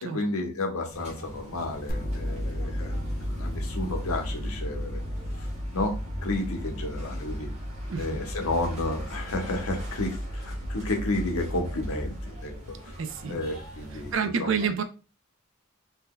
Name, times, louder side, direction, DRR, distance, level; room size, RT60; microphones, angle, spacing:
voice 1, 0.0-3.0 3.3-5.0 5.3-5.5 5.7-7.5 8.0-12.5 13.3-14.1 14.4-14.5, left 2 dB, 85° left, 3 dB, 0.8 m, -31 dB
sound 1, 0.9-14.2, equal, 30° right, 1.0 m, -44 dB
sound 2, 1.9-12.9, equal, 40° left, 0.5 m, -34 dB
voice 2, 13.0-13.4 14.1-14.8, right 6 dB, 60° right, 8 dB, 0.4 m, -28 dB
2.7 x 2.2 x 3.6 m, 0.35 s
head